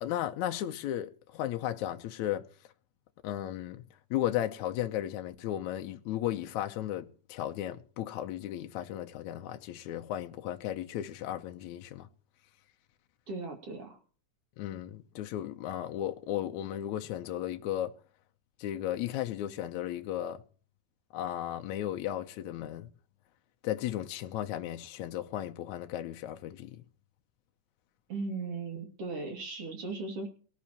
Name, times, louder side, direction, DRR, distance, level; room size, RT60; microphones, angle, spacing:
voice 1, 0.0-2.4 3.2-3.8 4.1-12.1 14.6-17.9 18.6-20.4 21.1-22.9 23.6-26.8, left 12 dB, 75° left, 2.0 m, -35 dB
voice 2, 13.3-14.0 28.1-30.3, right 3 dB, 45° right, 3.2 m, -37 dB
23.5 x 11.5 x 3.0 m
omnidirectional pair, 3.7 m